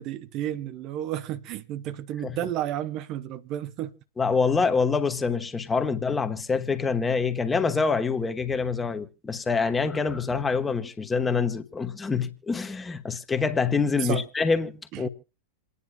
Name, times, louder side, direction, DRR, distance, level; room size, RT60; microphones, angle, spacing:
voice 1, 0.0-3.9 14.0-14.2 14.9-15.1, right 12 dB, 40° right, 0.6 m, -32 dB
voice 2, 4.2-15.1, left 5 dB, 15° left, 1.1 m, -26 dB
27.5 x 9.8 x 2.2 m
figure-of-eight pair, 90°, 0 cm